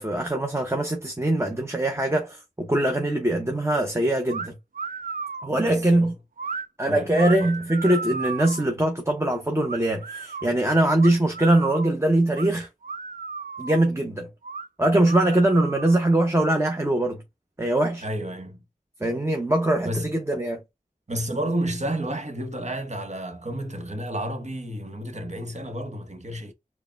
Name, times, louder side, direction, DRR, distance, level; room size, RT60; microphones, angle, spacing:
voice 1, 0.0-4.6 5.4-6.1 6.8-12.7 13.6-14.3 14.8-17.2 17.6-18.0 19.0-20.6, right 1 dB, 20° right, 0.9 m, -22 dB
sound 1, 4.3-4.5 4.7-5.5 6.4-6.6 7.1-8.7 9.7-10.5 11.0-11.9 12.3-12.5 12.8-13.9 14.4-14.7 15.0-16.2, right 5 dB, 70° right, 0.5 m, -34 dB
voice 2, 5.5-6.1 6.9-7.5 18.0-18.6 19.8-20.1 21.1-26.5, right 1 dB, 50° right, 1.0 m, -31 dB
4.7 x 2.2 x 3.3 m
wide cardioid pair, 50°, 15 cm